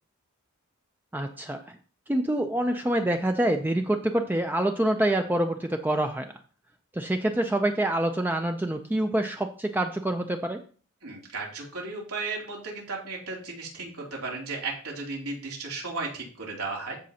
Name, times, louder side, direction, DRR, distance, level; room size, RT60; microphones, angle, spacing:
voice 1, 1.1-1.6 2.1-6.3 6.9-10.6, right 1 dB, 10° right, 5 dB, 0.4 m, -26 dB
voice 2, 11.0-17.0, right 3 dB, 80° right, -2 dB, 2.9 m, -35 dB
13.5 x 5.1 x 2.8 m, 0.41 s
head